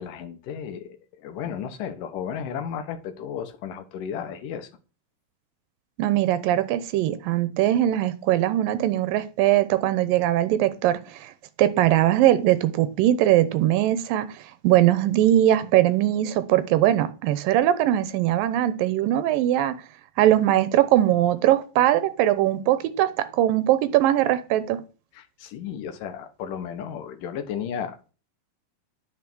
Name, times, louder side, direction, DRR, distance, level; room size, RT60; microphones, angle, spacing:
voice 1, 0.0-4.7 25.1-28.1, left 8 dB, 75° left, 2.8 m, -34 dB
voice 2, 6.0-11.3 11.6-19.8 20.2-24.8, right 13 dB, 90° right, 2.6 m, -21 dB
9.7 x 6.3 x 6.1 m
omnidirectional pair, 3.9 m